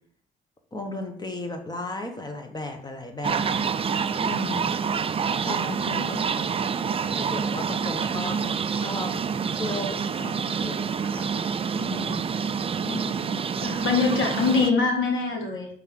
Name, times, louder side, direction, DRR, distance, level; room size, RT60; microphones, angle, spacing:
voice 1, 0.7-4.7 5.4-6.4 7.1-9.2 9.5-11.3 11.7-12.2, left 2 dB, 20° left, 5 dB, 1.2 m, -35 dB
sound 1, 3.2-14.7, right 6 dB, 30° right, 0.4 m, -27 dB
voice 2, 12.8-15.7, left 4 dB, 80° left, 1 dB, 1.6 m, -25 dB
5.4 x 3.8 x 5.9 m, 0.62 s
cardioid pair, 90°, 20 cm